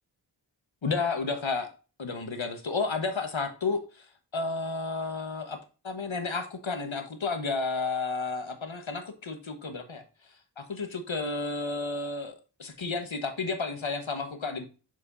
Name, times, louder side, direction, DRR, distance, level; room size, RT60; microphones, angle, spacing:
voice 1, 0.8-1.7 2.0-4.1 4.3-5.6 5.8-10.0 10.6-12.3 12.6-14.6, left 4 dB, 80° left, 7 dB, 1.3 m, -32 dB
6.5 x 6.3 x 2.6 m, 0.33 s
wide cardioid pair, 45°, 47 cm